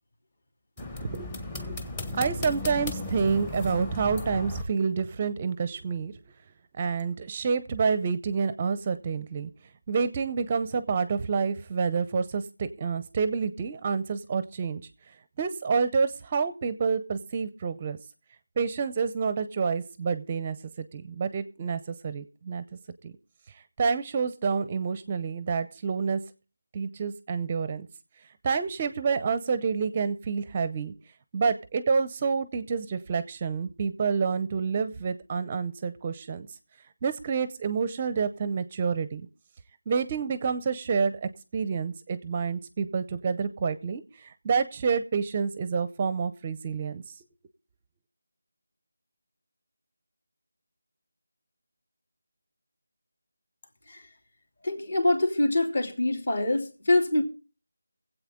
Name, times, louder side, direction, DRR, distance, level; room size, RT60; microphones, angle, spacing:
sound 1, 0.8-4.6, left 2 dB, 15° left, 0.9 m, -35 dB
voice 1, 1.0-6.1 6.8-9.5 9.9-14.8 15.4-18.0 18.6-22.6 23.0-23.1 23.5-26.2 26.7-27.9 28.4-30.9 31.3-36.5 37.0-39.2 39.9-47.2, right 5 dB, 20° right, 0.5 m, -28 dB
voice 2, 54.6-57.2, left 2 dB, 50° left, 2.9 m, -25 dB
22.5 x 8.1 x 3.6 m
figure-of-eight pair, 170°, 0 cm